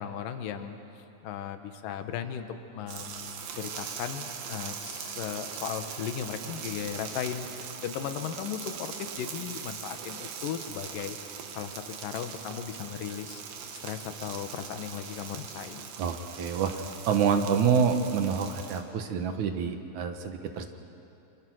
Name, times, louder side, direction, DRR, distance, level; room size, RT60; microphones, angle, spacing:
voice 1, 0.0-11.2 11.6-13.4 13.8-15.9, left 8 dB, 75° left, 8 dB, 2.8 m, -37 dB
sound 1, 2.9-18.8, right 7 dB, 90° right, 3.3 m, -41 dB
voice 2, 16.0-20.7, right 6 dB, 65° right, 6 dB, 2.5 m, -27 dB
28.5 x 26.5 x 6.3 m, 2.8 s
omnidirectional pair, 4.0 m